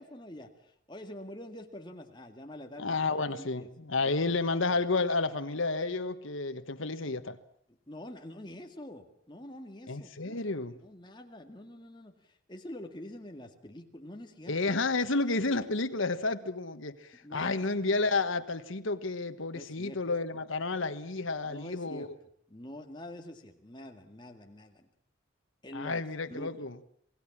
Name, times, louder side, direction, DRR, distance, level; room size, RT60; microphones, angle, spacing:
voice 1, 0.0-3.0 3.4-3.7 4.2-4.8 7.7-10.5 10.8-14.5 17.2-17.7 19.5-20.0 21.4-22.1 22.5-24.9 25.6-26.5, left 1 dB, 20° left, 2.1 m, -46 dB
voice 2, 2.8-7.4 9.9-10.7 14.5-22.1 25.7-26.7, left 3 dB, 75° left, 1.4 m, -31 dB
27.0 x 18.0 x 7.4 m
head